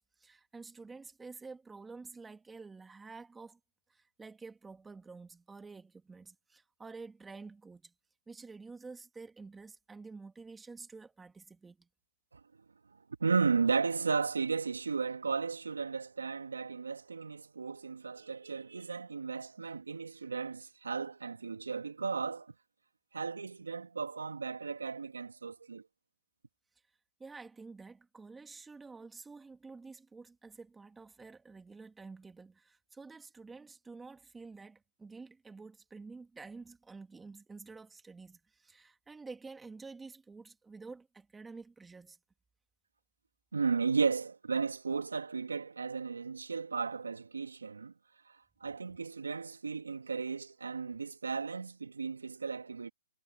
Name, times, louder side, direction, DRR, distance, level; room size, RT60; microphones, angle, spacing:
voice 1, 0.0-3.6 3.9-7.9 8.3-11.9 27.2-42.2, right 4 dB, 5° right, 2.1 m, -50 dB
voice 2, 13.2-22.5 23.1-25.8 43.5-47.9 48.6-52.9, right 5 dB, 90° right, 2.4 m, -34 dB
hypercardioid pair, 160°, 0 cm